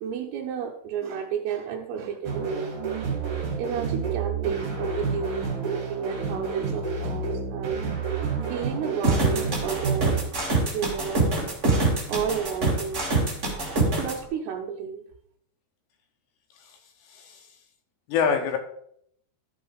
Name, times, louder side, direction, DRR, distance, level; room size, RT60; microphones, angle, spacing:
voice 1, 0.0-2.7 3.6-7.8 8.5-10.2 10.6-13.0 13.8-15.0, right 7 dB, 80° right, 0 dB, 2.5 m, -32 dB
sound 1, 2.2-10.2, right 5 dB, 40° right, 2.4 m, -29 dB
sound 2, 9.0-14.1, right 2 dB, 60° right, 0.7 m, -24 dB
voice 2, 17.1-17.5 18.1-18.6, left 6 dB, 80° left, 5 dB, 2.9 m, -26 dB
13.0 x 4.4 x 4.7 m, 0.68 s
omnidirectional pair, 5.2 m